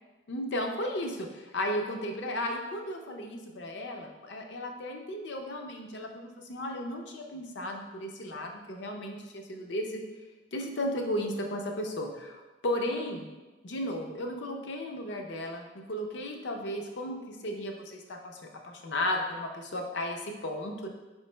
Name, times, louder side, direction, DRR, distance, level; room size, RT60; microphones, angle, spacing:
voice 1, 0.3-10.0 10.5-13.3 13.6-20.9, left 1 dB, 60° left, 3 dB, 0.5 m, -35 dB
4.5 x 3.1 x 3.2 m, 1.2 s
head